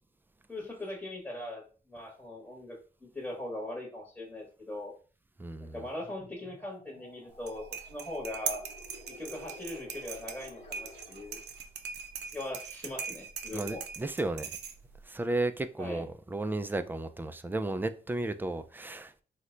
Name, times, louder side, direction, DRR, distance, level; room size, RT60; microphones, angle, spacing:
voice 1, 0.5-1.6 1.9-2.8 3.0-4.9 5.6-8.6 9.1-11.4 12.3-13.8 15.8-16.1, left 1 dB, 10° left, 1.0 m, -40 dB
voice 2, 5.4-5.7 13.5-14.5 15.1-19.2, right 2 dB, 10° right, 0.3 m, -34 dB
sound 1, 6.0-11.7, left 2 dB, 40° left, 1.2 m, -53 dB
sound 2, 7.3-15.0, right 6 dB, 85° right, 0.5 m, -41 dB
3.0 x 2.2 x 3.7 m
cardioid pair, 90°, 17 cm